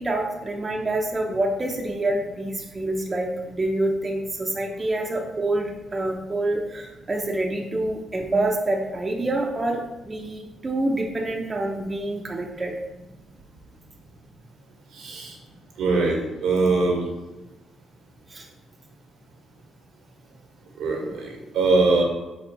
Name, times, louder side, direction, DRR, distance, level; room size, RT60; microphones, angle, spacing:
voice 1, 0.0-12.8 18.3-18.5, right 2 dB, 25° right, 0 dB, 0.9 m, -27 dB
voice 2, 14.9-15.3 15.8-17.1 20.8-22.0, right 3 dB, 80° right, 0 dB, 1.6 m, -22 dB
5.1 x 4.5 x 4.3 m, 1.0 s
cardioid pair, 90°, 0 cm